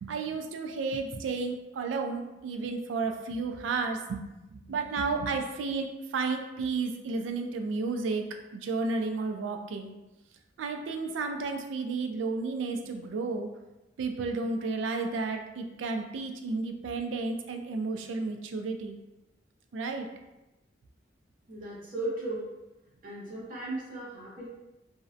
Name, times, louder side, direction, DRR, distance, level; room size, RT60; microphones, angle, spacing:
voice 1, 0.0-4.2 4.5-5.9 6.1-8.2 8.5-9.9 10.6-13.5 14.0-19.0 19.7-20.1, right 4 dB, 85° right, 4 dB, 0.3 m, -32 dB
voice 2, 21.5-22.5 23.0-24.5, right 2 dB, 50° right, -6 dB, 0.6 m, -36 dB
2.5 x 2.0 x 2.4 m, 1.0 s
head